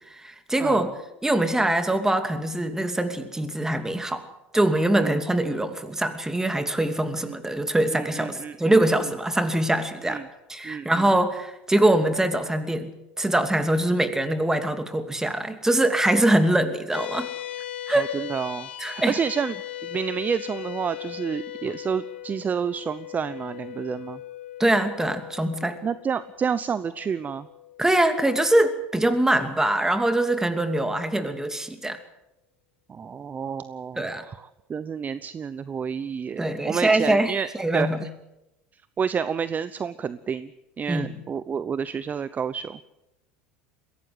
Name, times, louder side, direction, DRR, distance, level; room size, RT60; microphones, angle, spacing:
voice 1, 0.1-0.9 1.2-4.2 4.5-10.2 10.5-17.3 17.9-18.1 18.8-19.1 24.6-25.8 27.8-32.0 34.0-34.2 36.4-38.0 40.9-41.1, right 1 dB, 10° right, 8 dB, 2.7 m, -23 dB
voice 2, 0.6-0.9 5.0-5.2 7.2-7.4 7.9-8.8 10.0-10.3 10.6-11.0 17.9-19.6 19.8-24.2 25.8-27.5 32.9-34.4 34.7-38.1 39.0-40.5 40.8-42.8, right 6 dB, 30° right, 16 dB, 0.8 m, -29 dB
sound 1, 16.9-29.6, left 12 dB, 85° left, 1.2 m, -39 dB
22.5 x 16.5 x 7.9 m, 0.93 s
hypercardioid pair, 80°, 6 cm